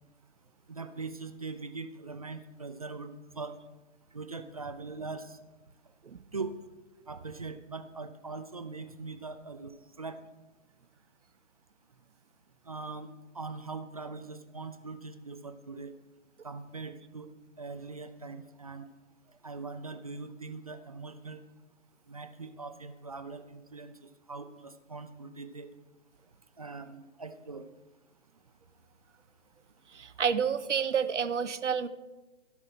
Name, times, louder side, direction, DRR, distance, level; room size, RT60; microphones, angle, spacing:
voice 1, 0.7-3.6 4.1-5.4 6.3-6.6 7.1-9.7 10.0-10.2 12.7-15.9 16.4-17.3 17.6-18.9 19.4-21.4 22.1-25.7 26.6-27.7, right 4 dB, 30° right, 9 dB, 0.4 m, -41 dB
voice 2, 29.9-31.9, right 7 dB, 70° right, 13 dB, 0.8 m, -29 dB
16.5 x 6.0 x 4.2 m, 1.1 s
figure-of-eight pair, 140°, 37 cm